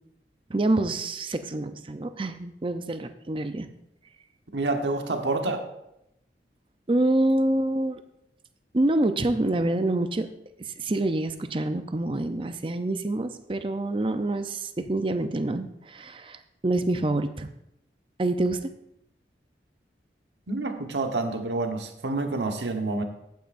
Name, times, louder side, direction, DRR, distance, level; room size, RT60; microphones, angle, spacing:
voice 1, 0.5-3.7 6.9-8.0 8.7-10.3 10.7-17.5 18.2-18.6, right 2 dB, 30° right, 9 dB, 0.5 m, -26 dB
voice 2, 4.5-5.6 20.5-23.0, right 2 dB, 85° right, 5 dB, 1.2 m, -28 dB
14.0 x 9.4 x 2.6 m, 0.83 s
head